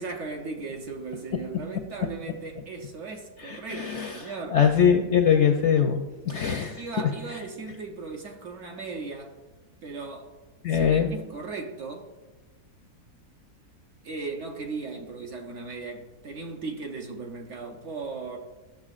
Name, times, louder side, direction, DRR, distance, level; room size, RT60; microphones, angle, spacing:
voice 1, 0.0-4.6 6.8-9.3 9.8-10.3 10.7-12.1 14.0-18.4, right 4 dB, 60° right, 1.0 m, -37 dB
voice 2, 3.4-4.2 4.5-6.8 10.6-11.1, left 7 dB, 65° left, 0.7 m, -22 dB
13.0 x 6.7 x 2.4 m
omnidirectional pair, 1.7 m